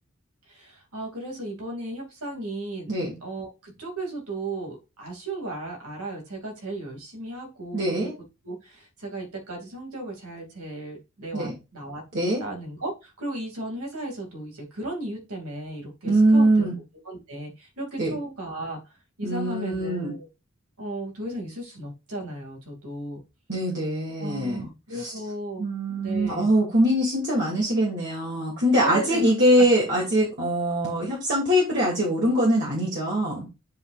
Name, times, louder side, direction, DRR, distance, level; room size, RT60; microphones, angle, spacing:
voice 1, 0.5-2.9 3.2-8.1 8.4-12.0 12.4-16.7 17.0-18.8 19.2-20.3 20.8-23.2 24.2-26.5 28.8-29.2 29.6-29.7, right 2 dB, 90° right, 1 dB, 2.5 m, -35 dB
voice 2, 7.7-8.1 11.3-11.5 12.1-12.4 16.0-16.7 18.0-18.1 19.2-20.1 23.5-24.7 25.0-25.1 25.6-33.5, right 1 dB, 55° right, -4 dB, 2.4 m, -23 dB
9.3 x 5.3 x 2.5 m, 0.27 s
head